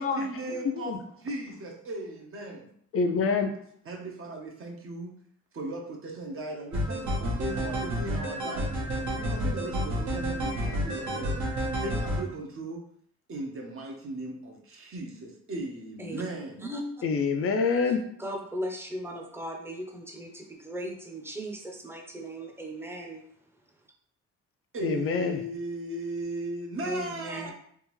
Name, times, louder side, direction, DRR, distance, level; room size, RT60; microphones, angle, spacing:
voice 1, 0.0-2.7 3.8-5.1 5.5-8.7 9.1-11.4 11.8-12.8 13.3-16.7 24.7-27.5, right 1 dB, 45° right, 1 dB, 0.9 m, -37 dB
voice 2, 0.6-1.0 2.9-3.5 17.0-18.0 24.8-25.4, left 5 dB, 50° left, 5 dB, 0.5 m, -26 dB
sound 1, 6.7-12.2, equal, 65° right, 1.1 m, -30 dB
voice 3, 17.8-23.2 26.8-27.5, equal, 10° right, 1 dB, 0.7 m, -37 dB
3.5 x 2.4 x 3.1 m, 0.66 s
cardioid pair, 90°, 30 cm